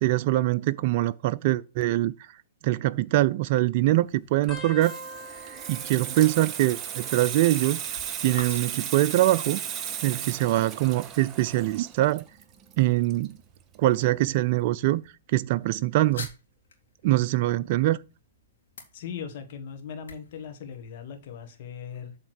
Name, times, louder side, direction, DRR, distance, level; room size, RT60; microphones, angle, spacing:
voice 1, 0.0-2.3 2.6-5.0 5.7-7.8 8.2-9.6 10.0-12.2 12.8-13.4 13.8-15.0 15.3-16.3 17.0-18.0, right 16 dB, 45° right, 0.3 m, -23 dB
sound 1, 3.7-21.5, left 4 dB, 75° left, 2.2 m, -51 dB
Water tap faucet / Sink (filling or washing), 4.4-13.7 14.0-14.3, right 9 dB, 25° right, 0.9 m, -35 dB
sound 2, 4.5-7.7 7.9-8.5 9.5-11.0 11.6-12.0 13.2-13.6 15.1-15.2, equal, 5° left, 1.4 m, -46 dB
voice 2, 18.9-22.2, left 7 dB, 50° left, 1.6 m, -39 dB
7.7 x 3.6 x 6.4 m
hypercardioid pair, 125°, 0 cm